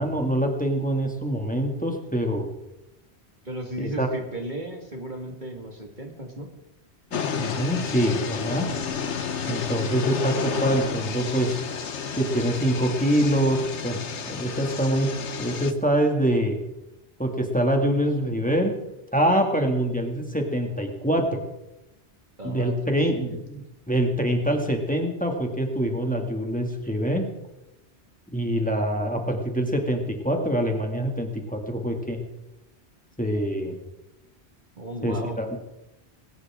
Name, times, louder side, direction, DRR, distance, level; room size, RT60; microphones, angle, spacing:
voice 1, 0.0-2.5 3.8-4.1 7.4-8.7 9.5-11.6 12.2-14.0 14.3-15.1 15.4-16.6 17.2-18.7 19.1-21.4 22.4-23.6 23.9-27.3 28.3-32.2 33.2-33.7 35.0-35.6, right 1 dB, 5° left, 2 dB, 2.3 m, -25 dB
voice 2, 3.4-6.5 22.4-23.6 34.8-35.4, right 1 dB, 45° right, 2 dB, 2.2 m, -35 dB
sound 1, 7.1-15.7, left 6 dB, 90° left, 1.4 m, -31 dB
20.5 x 18.5 x 3.8 m, 0.90 s
omnidirectional pair, 1.1 m